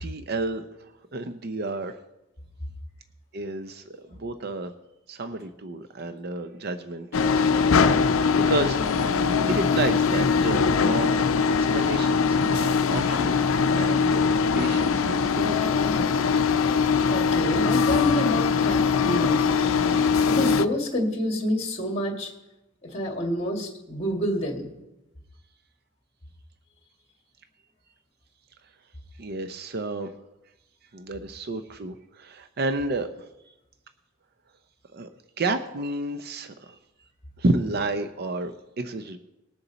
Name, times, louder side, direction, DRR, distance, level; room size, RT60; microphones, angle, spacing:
voice 1, 0.0-2.0 3.3-4.7 5.1-7.2 8.3-9.2 9.5-13.4 13.8-15.7 29.2-30.1 30.9-33.3 34.9-35.1 35.4-36.8 37.4-39.2, right 2 dB, 50° right, 9 dB, 0.6 m, -31 dB
sound 1, 7.1-20.7, left 5 dB, 80° left, 0.5 m, -22 dB
voice 2, 17.1-19.6 20.3-22.3 22.9-24.7, equal, 30° left, 1 dB, 2.1 m, -28 dB
20.0 x 6.9 x 4.1 m, 0.95 s
head